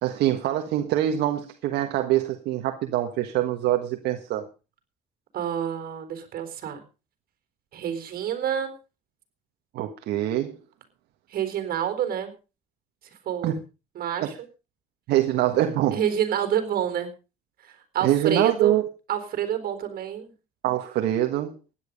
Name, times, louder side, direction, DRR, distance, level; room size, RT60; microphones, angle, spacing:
voice 1, 0.0-4.4 9.7-10.6 13.4-13.6 14.2-14.3 15.1-16.0 18.0-18.8 20.6-21.6, right 12 dB, 80° right, 1.5 m, -24 dB
voice 2, 5.3-6.8 7.7-8.7 11.3-12.3 13.2-13.5 13.9-14.3 15.9-17.1 17.6-18.8 19.1-20.3, right 9 dB, 60° right, 4.2 m, -28 dB
16.0 x 10.5 x 5.3 m
cardioid pair, 110°, 17 cm